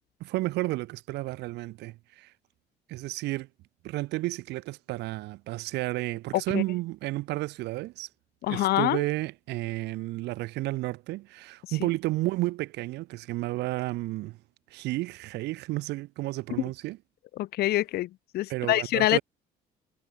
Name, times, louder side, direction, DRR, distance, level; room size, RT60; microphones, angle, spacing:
voice 1, 0.2-2.3 2.9-3.5 3.8-8.1 8.5-14.4 14.7-17.0 18.5-19.2, right 19 dB, 85° right, 3.8 m, -32 dB
voice 2, 6.3-6.6 8.4-9.0 17.4-19.2, left 15 dB, 70° left, 0.8 m, -26 dB
cardioid pair, 110°, 17 cm